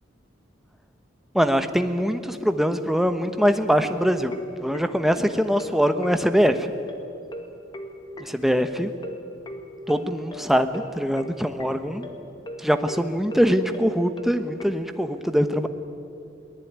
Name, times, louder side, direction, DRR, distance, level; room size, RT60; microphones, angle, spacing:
voice 1, 1.3-4.3 4.6-6.6 8.3-8.9 9.9-12.1 12.6-15.7, equal, ahead, 8 dB, 1.1 m, -22 dB
sound 1, 3.4-14.7, left 1 dB, 25° left, 2.0 m, -38 dB
23.0 x 19.0 x 9.5 m, 2.5 s
head